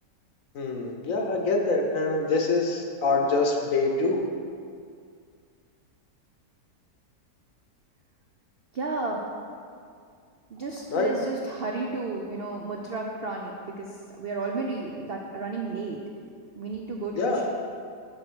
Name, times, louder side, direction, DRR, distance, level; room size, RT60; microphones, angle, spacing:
voice 1, 0.5-4.2 10.9-11.1 17.1-17.4, left 3 dB, 60° left, 2 dB, 1.1 m, -25 dB
voice 2, 8.7-9.3 10.5-16.0 16.6-17.4, right 3 dB, 80° right, 0 dB, 0.5 m, -32 dB
6.6 x 5.9 x 6.2 m, 2.3 s
omnidirectional pair, 1.8 m